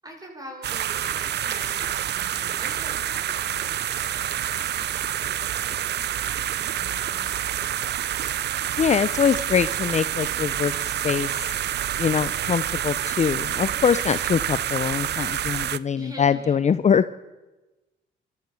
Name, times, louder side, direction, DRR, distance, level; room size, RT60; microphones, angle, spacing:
voice 1, 0.0-8.1 15.9-16.6, equal, 20° right, 1 dB, 6.9 m, -45 dB
sound 1, 0.6-15.8, right 11 dB, 60° right, 0.6 m, -28 dB
voice 2, 8.8-11.5 12.0-17.2, left 7 dB, 35° left, 14 dB, 0.6 m, -23 dB
28.0 x 13.0 x 7.0 m, 1.1 s
cardioid pair, 90°, 20 cm